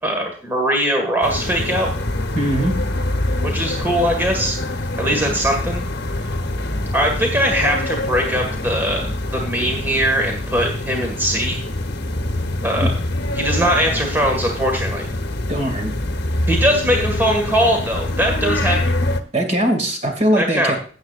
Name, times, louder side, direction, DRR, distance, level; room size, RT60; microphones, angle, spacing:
voice 1, 0.0-1.9 3.4-4.6 5.0-5.8 6.9-9.1 9.3-11.6 12.6-12.9 13.3-15.1 16.5-18.8 20.4-20.8, equal, 10° right, 1 dB, 1.8 m, -20 dB
sound 1, 1.2-19.2, left 1 dB, 60° left, 1.1 m, -24 dB
voice 2, 2.3-2.8 12.8-12.9 13.6-13.7 15.5-15.9 19.3-20.8, right 1 dB, 40° right, 4 dB, 2.4 m, -20 dB
16.5 x 8.0 x 2.5 m, 0.42 s
head